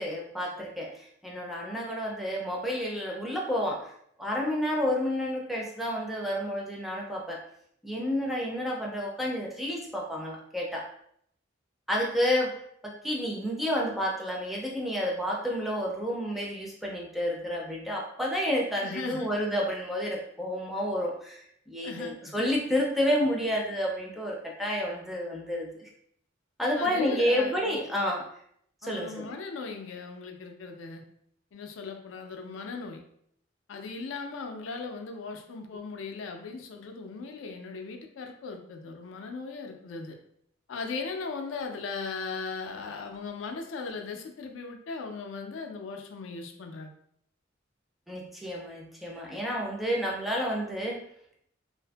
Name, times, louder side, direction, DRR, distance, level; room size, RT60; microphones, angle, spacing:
voice 1, 0.0-3.9 4.2-7.4 7.8-10.8 11.9-12.5 12.8-25.9 26.6-28.2 28.8-29.3 48.1-51.0, equal, ahead, -2 dB, 0.4 m, -30 dB
voice 2, 18.8-19.3 21.8-22.5 26.8-27.8 28.8-31.0 31.5-33.0 33.7-40.2 40.7-46.9, left 4 dB, 75° left, 4 dB, 0.4 m, -38 dB
2.5 x 2.5 x 2.2 m, 0.69 s
head